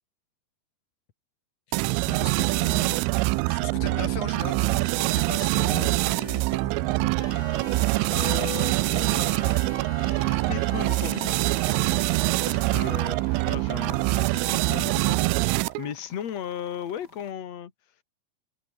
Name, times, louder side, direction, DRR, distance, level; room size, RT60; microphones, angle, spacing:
voice 1, 1.7-3.0 3.5-7.3 12.7-12.9, left 7 dB, 50° left, 2.8 m, -39 dB
sound 1, 1.7-15.9, right 24 dB, 85° right, 2.9 m, -24 dB
sound 2, 7.2-17.3, left 2 dB, 20° left, 8.2 m, -43 dB
voice 2, 8.1-9.6 10.0-11.5 12.5-13.2 13.4-15.5 15.8-17.7, left 9 dB, 65° left, 1.7 m, -36 dB
open air
omnidirectional pair, 6.0 m